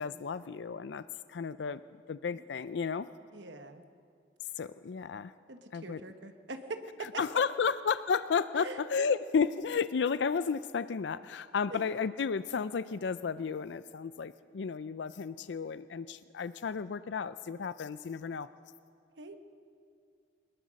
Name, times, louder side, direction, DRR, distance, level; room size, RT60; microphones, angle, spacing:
voice 1, 0.0-1.8 2.1-3.1 4.6-5.3 5.7-6.0 7.2-18.5, left 6 dB, 75° left, 15 dB, 0.4 m, -33 dB
voice 2, 3.3-3.8 5.5-7.4 8.5-9.1 11.7-11.8 19.2-19.4, right 3 dB, 80° right, 7 dB, 1.3 m, -43 dB
22.0 x 20.5 x 6.4 m, 2.4 s
head